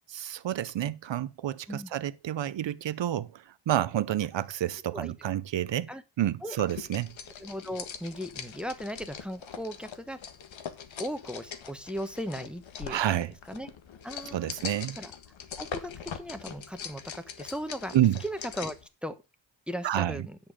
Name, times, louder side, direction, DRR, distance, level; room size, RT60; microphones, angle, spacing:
voice 1, 0.1-5.9 6.2-7.1 12.9-13.3 14.3-15.0 17.9-18.2 19.8-20.3, right 12 dB, 70° right, 0.7 m, -29 dB
sound 1, 6.6-18.9, left 7 dB, 90° left, 1.5 m, -42 dB
voice 2, 7.4-10.2 11.0-13.0 13.5-13.7 14.0-14.5 15.0-15.1 15.6-17.9 18.2-18.8 19.0-19.1 19.7-20.4, equal, ahead, 1.1 m, -37 dB
10.5 x 7.0 x 5.0 m
wide cardioid pair, 130°, 45 cm